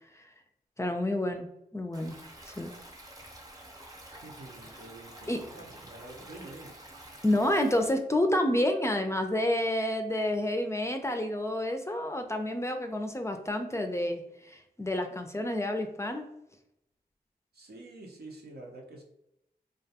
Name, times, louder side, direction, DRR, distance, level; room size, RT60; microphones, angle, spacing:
voice 1, 0.8-2.2 2.4-2.7 5.3-5.4 7.2-16.2, left 1 dB, 15° left, 5 dB, 0.4 m, -29 dB
Stream, 1.9-7.9, right 1 dB, 20° right, 0.6 m, -49 dB
voice 2, 4.2-6.8 17.5-19.0, right 2 dB, 75° right, 1 dB, 0.6 m, -47 dB
2.2 x 2.2 x 2.7 m, 0.82 s
cardioid pair, 45°, 16 cm